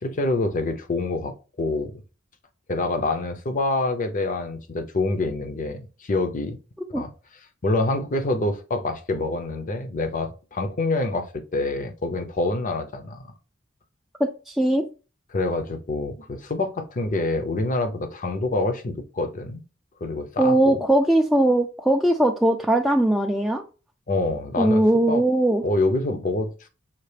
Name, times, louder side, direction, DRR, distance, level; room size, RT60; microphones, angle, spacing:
voice 1, 0.0-2.0 2.7-6.6 6.9-7.1 7.6-13.2 15.3-19.6 20.0-20.8 24.1-24.8 25.1-25.2 25.6-26.7, left 2 dB, 40° left, 0.6 m, -26 dB
voice 2, 14.2-14.9 20.4-23.6 24.6-25.6, right 1 dB, ahead, 0.3 m, -20 dB
5.7 x 2.4 x 3.3 m
head